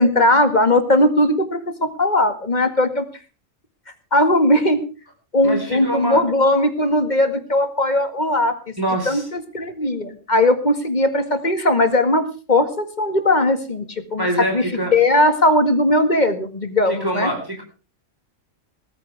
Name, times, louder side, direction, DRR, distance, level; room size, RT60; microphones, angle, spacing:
voice 1, 0.0-3.0 4.1-4.8 5.3-8.6 9.1-12.2 12.5-14.3 14.5-14.6 14.9-17.3, left 1 dB, 35° left, 9 dB, 2.0 m, -18 dB
voice 2, 5.4-6.2 8.8-9.2 14.2-14.9 16.9-17.6, equal, 15° right, 2 dB, 4.6 m, -24 dB
19.0 x 14.5 x 3.5 m, 0.35 s
omnidirectional pair, 1.4 m